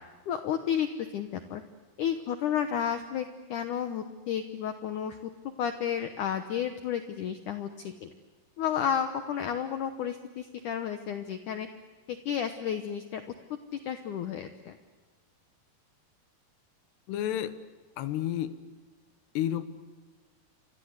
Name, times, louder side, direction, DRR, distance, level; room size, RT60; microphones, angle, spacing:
voice 1, 0.3-0.9 1.1-1.6 2.0-5.3 5.6-8.1 8.6-11.7 12.1-13.2 13.7-14.8, left 9 dB, 70° left, 8 dB, 2.1 m, -32 dB
voice 2, 17.1-17.6 18.0-18.6 19.3-19.6, left 11 dB, 85° left, 12 dB, 3.4 m, -30 dB
29.5 x 25.0 x 8.1 m, 1.4 s
omnidirectional pair, 4.7 m